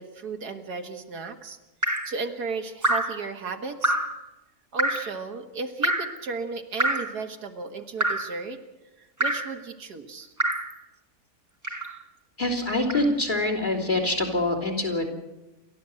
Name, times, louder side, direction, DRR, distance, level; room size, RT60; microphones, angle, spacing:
voice 1, 0.0-3.9 4.7-8.6 9.0-10.3, right 4 dB, 80° right, 5 dB, 2.2 m, -35 dB
Drip, 1.8-2.2 2.8-3.2 3.8-4.2 4.8-5.1 5.8-6.2 6.8-7.2 8.0-8.3 9.2-9.5 10.4-10.7 11.6-12.0 12.9-13.1, right 1 dB, 10° right, 1.3 m, -26 dB
voice 2, 12.4-15.1, left 2 dB, 30° left, 4 dB, 3.5 m, -25 dB
29.0 x 12.5 x 7.8 m, 1.0 s
omnidirectional pair, 1.7 m